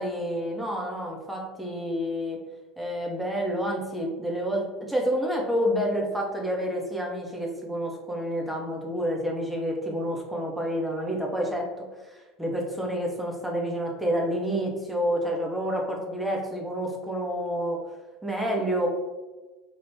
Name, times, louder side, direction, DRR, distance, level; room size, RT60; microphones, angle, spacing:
voice 1, 0.0-2.4 2.8-17.8 18.2-18.9, equal, 5° right, -1 dB, 0.8 m, -29 dB
3.1 x 2.4 x 3.4 m, 1.2 s
figure-of-eight pair, 70°, 0 cm